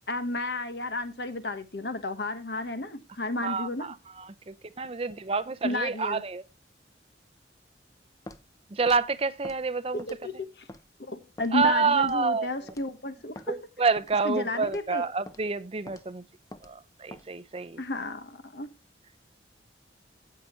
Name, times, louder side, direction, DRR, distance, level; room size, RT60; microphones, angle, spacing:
voice 1, 0.1-3.9 5.6-6.2 10.0-10.7 11.0-13.6 14.2-15.0 17.8-18.7, left 2 dB, 60° left, 1.3 m, -32 dB
voice 2, 3.4-6.4 8.7-10.0 11.5-12.5 13.5-16.2 16.6-17.8, right 4 dB, 30° right, 0.6 m, -28 dB
Walk footsteps, 8.3-8.5 8.9-9.0 9.4-9.6 10.0-10.3 10.7-10.8 11.4-11.5 12.0-12.3 12.7-12.9 13.4-13.5 14.0-14.2 14.6-14.9 15.3-15.4 15.9-16.0 16.5-16.7 17.1-17.3, left 1 dB, 20° left, 0.7 m, -45 dB
16.0 x 5.8 x 3.1 m
head